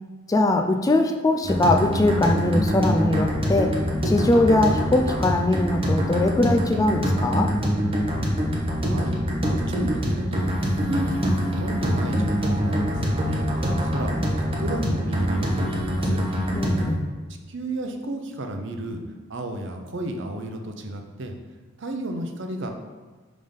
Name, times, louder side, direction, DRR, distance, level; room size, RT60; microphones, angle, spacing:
voice 1, 0.3-3.8 4.0-7.5 16.5-17.1, left 2 dB, 15° left, 4 dB, 0.3 m, -21 dB
sound 1, 1.4-16.9, equal, 25° right, 0.9 m, -24 dB
voice 2, 8.8-9.2 9.5-10.5 10.8-16.2 17.5-19.0 19.3-21.3 21.8-22.7, right 1 dB, 60° right, 4 dB, 0.7 m, -32 dB
5.5 x 3.6 x 5.2 m, 1.3 s
head